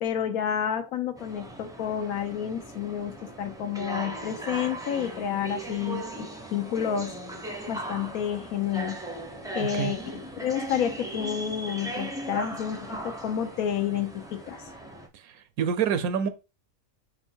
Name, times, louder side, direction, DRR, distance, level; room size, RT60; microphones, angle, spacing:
voice 1, 0.0-7.2 7.7-9.0 9.5-14.6, left 9 dB, 80° left, 1.2 m, -30 dB
sound 1, 1.2-15.1, right 1 dB, 5° right, 0.4 m, -38 dB
voice 2, 9.6-9.9 15.1-16.3, right 7 dB, 90° right, 1.1 m, -27 dB
5.5 x 2.2 x 4.4 m
omnidirectional pair, 1.5 m